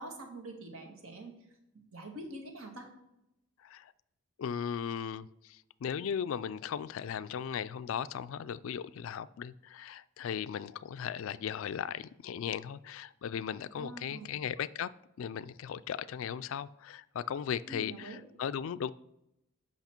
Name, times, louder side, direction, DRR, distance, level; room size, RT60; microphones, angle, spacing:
voice 1, 0.0-1.3 1.9-2.9 13.7-14.4 17.7-18.2, right 2 dB, 70° right, 4 dB, 1.5 m, -45 dB
voice 2, 3.6-3.9 4.4-14.9 15.2-18.9, left 8 dB, 65° left, 16 dB, 0.3 m, -37 dB
8.1 x 5.9 x 4.4 m, 0.83 s
head